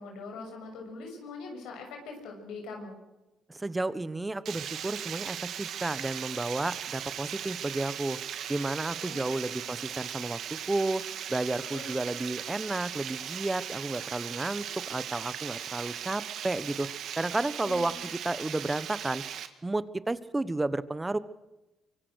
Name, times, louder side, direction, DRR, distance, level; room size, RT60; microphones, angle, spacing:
voice 1, 0.0-2.9 9.0-9.7 11.6-12.0 17.6-18.1, left 3 dB, 90° left, 2 dB, 6.7 m, -43 dB
voice 2, 3.5-8.2 8.5-11.0 11.3-16.9 17.2-17.9 18.2-19.2 19.6-21.2, right 2 dB, 15° right, 15 dB, 1.3 m, -32 dB
Water, 4.5-19.5, right 9 dB, 75° right, 2.0 m, -38 dB
24.5 x 24.0 x 6.5 m, 0.98 s
cardioid pair, 90°, 0 cm